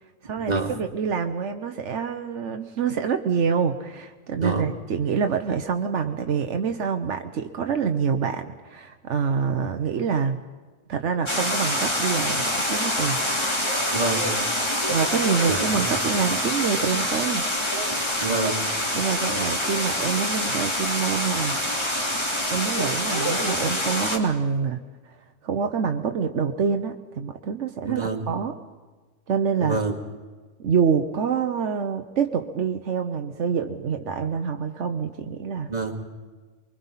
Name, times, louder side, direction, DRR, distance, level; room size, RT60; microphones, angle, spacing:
voice 1, 0.2-10.4 10.9-13.2 14.9-17.5 17.8-17.9 19.0-21.6 22.5-28.6 29.3-29.8 30.6-35.7, right 6 dB, 80° right, 6 dB, 1.2 m, -26 dB
sound 1, 11.3-24.2, left 1 dB, 25° left, 2.9 m, -26 dB
voice 2, 13.9-14.3 15.4-15.6 18.2-18.7 27.9-28.3 29.6-29.9 35.7-36.0, right 3 dB, 35° right, 2 dB, 2.3 m, -26 dB
24.0 x 23.0 x 5.7 m, 1.4 s
omnidirectional pair, 1.2 m